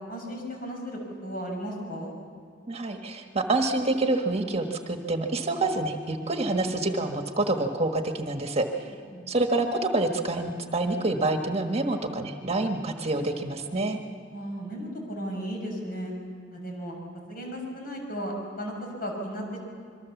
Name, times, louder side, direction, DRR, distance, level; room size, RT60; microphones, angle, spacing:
voice 1, 0.1-2.1 9.1-9.3 14.3-16.1 16.5-16.9 17.3-19.6, equal, 50° left, 1 dB, 6.3 m, -35 dB
voice 2, 2.7-8.7 9.3-14.0, right 2 dB, 35° right, 4 dB, 1.4 m, -27 dB
26.5 x 23.0 x 7.2 m, 2.1 s
head